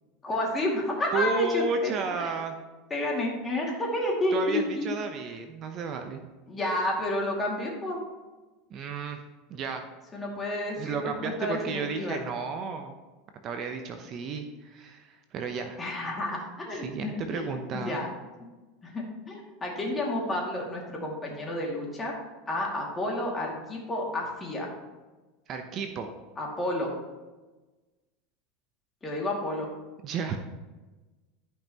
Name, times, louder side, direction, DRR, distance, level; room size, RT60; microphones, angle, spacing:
voice 1, 0.2-2.3 2.9-4.9 6.5-8.0 10.1-11.1 11.4-12.2 15.8-18.1 18.8-22.1 22.5-24.7 26.4-26.9 29.0-29.7, left 1 dB, 20° left, -2 dB, 2.3 m, -30 dB
voice 2, 1.1-2.6 4.3-6.2 8.7-9.2 9.5-9.8 10.8-13.0 13.4-15.8 16.7-18.0 25.5-26.1 30.0-30.4, right 4 dB, 40° right, 6 dB, 0.7 m, -32 dB
13.5 x 5.5 x 3.0 m, 1.2 s
supercardioid pair, 135°, 0 cm